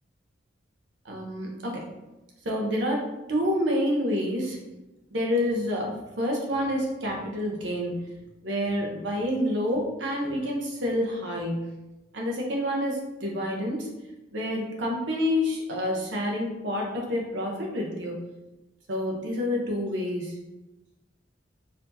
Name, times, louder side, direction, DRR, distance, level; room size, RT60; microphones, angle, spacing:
voice 1, 1.0-1.9 2.4-4.6 5.1-8.1 8.4-11.7 12.1-13.9 14.3-18.2 18.9-20.4, left 1 dB, 75° right, -1 dB, 0.9 m, -28 dB
4.2 x 2.8 x 2.7 m, 1.0 s
head